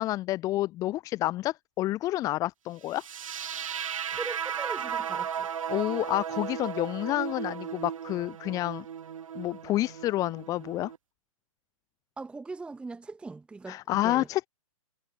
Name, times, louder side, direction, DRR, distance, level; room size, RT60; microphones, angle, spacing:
voice 1, 0.0-3.0 5.7-8.8 9.3-10.9 13.7-14.5, left 16 dB, 20° left, 0.6 m, -29 dB
sound 1, 2.9-11.0, right 8 dB, 70° right, 1.5 m, -35 dB
voice 2, 4.1-5.5 12.2-14.3, right 3 dB, 5° right, 1.3 m, -40 dB
hypercardioid pair, 135°, 18 cm